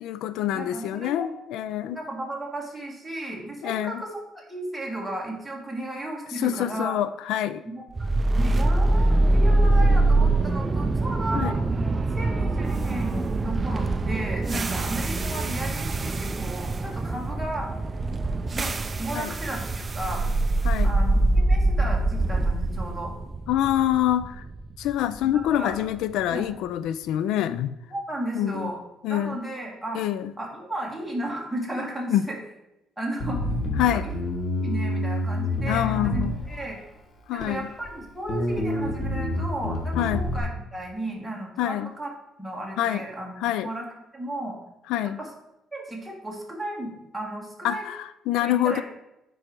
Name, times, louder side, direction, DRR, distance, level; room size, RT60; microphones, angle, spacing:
voice 1, 0.0-2.0 3.6-4.0 6.4-7.6 11.3-11.5 19.1-19.3 20.6-21.0 23.5-24.4 24.8-27.8 28.4-28.7 29.0-29.4 29.9-30.3 32.1-32.2 33.8-34.1 35.7-36.3 37.3-37.7 39.9-40.2 41.6-41.9 42.8-43.0 43.4-43.7 44.9-45.2 47.6-48.8, left 12 dB, 85° left, 14 dB, 0.3 m, -26 dB
voice 2, 0.5-1.4 1.9-6.9 7.7-11.6 12.2-17.7 18.5-20.2 20.8-23.1 25.2-25.8 26.3-26.5 27.9-28.8 29.1-30.0 30.4-32.4 33.0-33.4 33.7-34.1 34.6-36.8 37.3-42.1 42.4-43.4 43.6-43.9 44.1-44.6 45.2-45.3 45.7-47.9 48.4-48.8, right 1 dB, ahead, -2 dB, 1.8 m, -34 dB
sound 1, 7.9-26.0, right 2 dB, 20° right, 0.4 m, -24 dB
Bass guitar, 33.2-36.8 37.4-37.9 38.3-40.4, left 1 dB, 40° left, 1.3 m, -28 dB
9.6 x 4.8 x 4.5 m, 0.90 s
cardioid pair, 155°, 0 cm